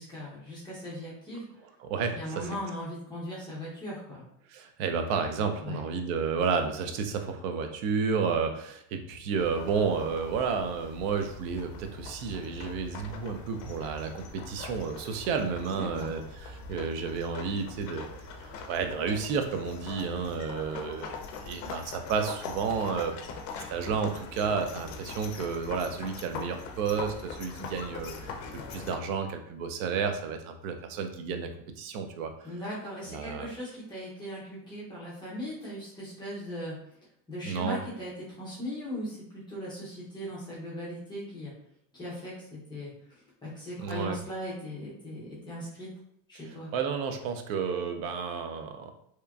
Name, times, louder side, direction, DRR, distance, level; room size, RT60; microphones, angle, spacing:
voice 1, 0.0-1.4 2.1-4.2 5.6-5.8 15.7-16.1 32.4-36.8 37.3-41.5 41.9-45.9 46.3-46.7, equal, 10° left, -8 dB, 0.5 m, -39 dB
voice 2, 1.8-2.5 4.5-18.1 18.7-21.1 21.4-23.1 23.6-28.3 28.7-31.5 31.8-32.3 33.1-33.5 37.5-37.8 43.8-44.2 46.7-48.9, right 5 dB, 75° right, 6 dB, 0.6 m, -31 dB
sound 1, 9.4-29.0, left 4 dB, 65° left, 0.5 m, -42 dB
2.9 x 2.4 x 2.2 m, 0.71 s
cardioid pair, 160°, 40 cm